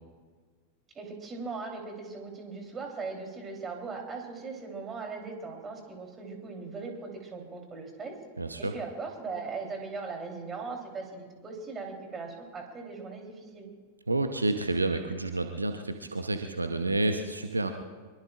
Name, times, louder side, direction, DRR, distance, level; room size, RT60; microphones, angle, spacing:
voice 1, 1.0-8.2 8.6-13.7, right 4 dB, 20° right, 2 dB, 3.4 m, -39 dB
voice 2, 8.4-8.7 14.1-17.7, right 2 dB, 80° right, 6 dB, 0.9 m, -29 dB
24.0 x 22.5 x 2.5 m, 1.5 s
figure-of-eight pair, 90°, 0 cm